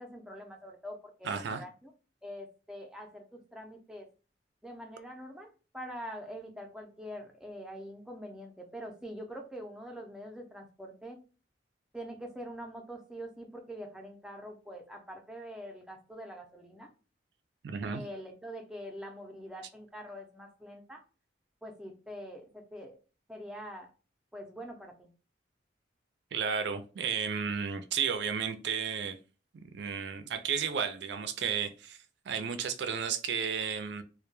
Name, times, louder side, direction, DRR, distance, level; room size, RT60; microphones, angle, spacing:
voice 1, 0.0-1.9 2.2-4.1 4.6-11.2 11.9-16.9 17.9-21.0 21.6-23.0 23.3-23.9 24.3-25.1, equal, 5° right, 0.5 m, -44 dB
voice 2, 1.2-1.6 17.6-18.0 26.3-29.2 29.7-32.0 32.3-34.0, right 6 dB, 65° right, 0.4 m, -33 dB
2.1 x 2.1 x 3.0 m
head